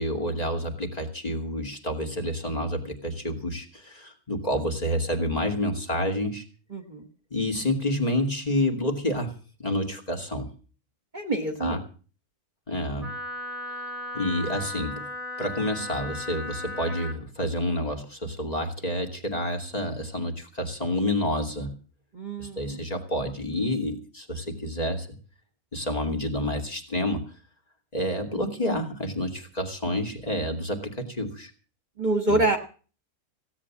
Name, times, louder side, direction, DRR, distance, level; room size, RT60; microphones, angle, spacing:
voice 1, 0.0-6.4 7.3-9.3 9.6-10.5 11.6-11.8 12.7-13.1 14.1-15.1 15.4-21.8 22.4-25.2 25.7-27.2 27.9-31.5 32.3-32.6, left 1 dB, 25° left, 3 dB, 2.5 m, -29 dB
voice 2, 6.7-7.0 11.1-11.8 22.1-22.8 32.0-32.6, right 2 dB, 30° right, 5 dB, 1.5 m, -26 dB
Wind instrument woodwind instrument, 13.0-17.2, left 1 dB, ahead, 2.9 m, -36 dB
16.5 x 8.8 x 7.3 m, 0.39 s
omnidirectional pair, 1.5 m